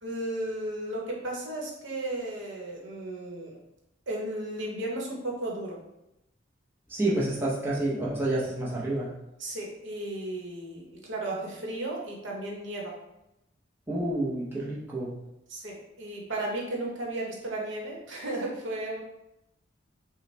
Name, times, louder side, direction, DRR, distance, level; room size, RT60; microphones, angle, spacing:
voice 1, 0.0-3.6 4.1-5.8 9.4-13.0 15.5-19.0, right 1 dB, 65° right, -2 dB, 0.9 m, -34 dB
voice 2, 6.9-9.1 13.9-15.1, right 1 dB, 10° right, -7 dB, 0.7 m, -29 dB
5.3 x 2.1 x 3.2 m, 0.88 s
head